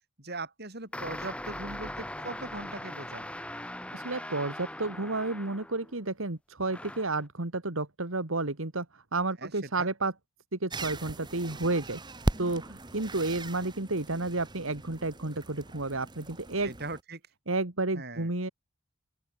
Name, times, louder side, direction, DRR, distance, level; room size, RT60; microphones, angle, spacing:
voice 1, 0.2-3.3 9.4-9.9 16.6-17.2 17.9-18.3, right 2 dB, 50° right, 7.9 m, -40 dB
sound 1, 0.9-6.0 6.7-7.2, left 1 dB, 5° left, 2.3 m, -40 dB
voice 2, 3.9-8.9 9.1-10.1 10.5-12.0 12.4-16.7 17.5-18.5, right 2 dB, 70° right, 2.0 m, -31 dB
sound 2, 10.7-17.0, right 1 dB, 20° right, 1.2 m, -38 dB
open air
head